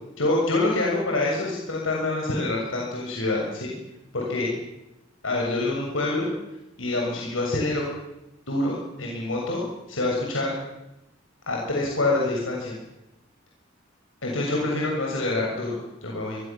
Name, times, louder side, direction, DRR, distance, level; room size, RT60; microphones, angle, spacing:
voice 1, 0.2-3.7 4.1-4.5 5.2-6.3 6.8-7.8 8.5-10.6 11.5-12.8 14.2-16.4, left 2 dB, 85° left, -1 dB, 6.9 m, -26 dB
25.0 x 22.0 x 7.4 m, 0.90 s
head